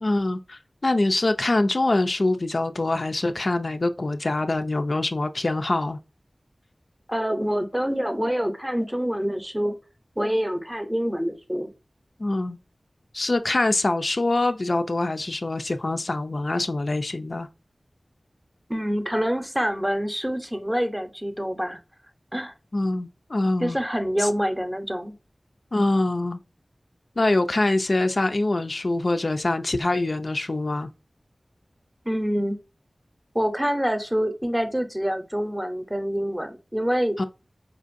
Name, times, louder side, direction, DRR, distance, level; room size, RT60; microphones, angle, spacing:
voice 1, 0.0-6.0 12.2-12.6 13.1-17.5 22.7-23.8 24.2-24.3 25.7-26.4 27.2-30.9 37.2-37.3, left 2 dB, 55° left, 0.3 m, -24 dB
voice 2, 7.1-9.8 10.2-11.7 18.7-21.8 22.3-22.5 23.6-25.1 32.1-32.6 33.3-37.3, equal, 10° right, 0.6 m, -26 dB
4.4 x 2.5 x 2.5 m
wide cardioid pair, 65°, 0 cm